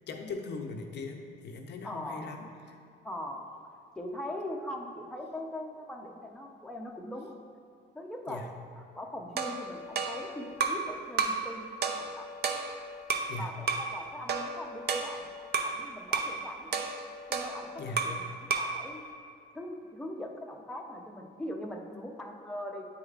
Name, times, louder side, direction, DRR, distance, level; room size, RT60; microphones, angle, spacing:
voice 1, 0.1-2.8 8.3-8.6 13.3-13.6 17.8-18.2, left 3 dB, 60° left, 3 dB, 0.6 m, -40 dB
voice 2, 1.8-2.3 3.0-3.5 4.0-7.3 7.9-8.4 8.7-12.3 13.4-15.3 15.6-16.8 17.3-18.2 18.6-19.0 19.5-22.9, left 1 dB, 5° left, 1 dB, 0.6 m, -41 dB
sound 1, 9.4-10.9 11.2-11.5 11.8-13.3 13.7-13.9 14.3-15.8 16.1-16.4 16.7-18.2 18.5-18.8, right 5 dB, 55° right, 0.5 m, -32 dB
8.8 x 4.8 x 2.4 m, 2.5 s
cardioid pair, 90°, 20 cm